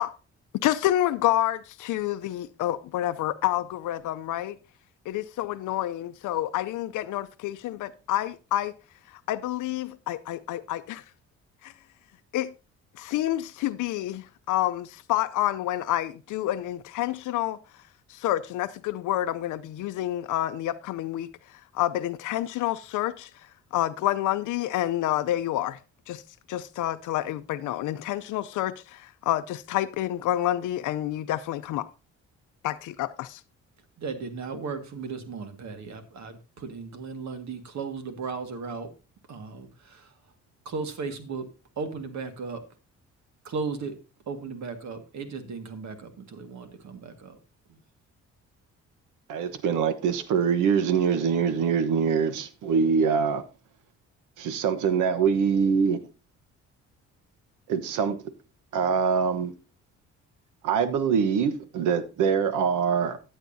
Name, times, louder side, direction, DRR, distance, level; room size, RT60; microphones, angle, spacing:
voice 1, 0.6-4.6 5.1-8.7 9.1-11.0 11.6-11.7 12.3-12.5 12.9-17.6 18.1-23.3 23.7-25.8 26.1-26.2 26.5-31.9 32.6-33.4, left 13 dB, 80° left, 0.6 m, -28 dB
voice 2, 34.0-38.9 39.3-40.3 40.7-41.5 41.8-42.6 43.4-43.9 44.3-47.4 47.7-47.8, right 4 dB, 65° right, 1.8 m, -36 dB
voice 3, 49.3-53.4 54.4-56.0 57.7-58.2 58.7-59.5 60.6-63.2, right 6 dB, 90° right, 1.1 m, -24 dB
14.0 x 8.1 x 2.7 m
cardioid pair, 90°, 30 cm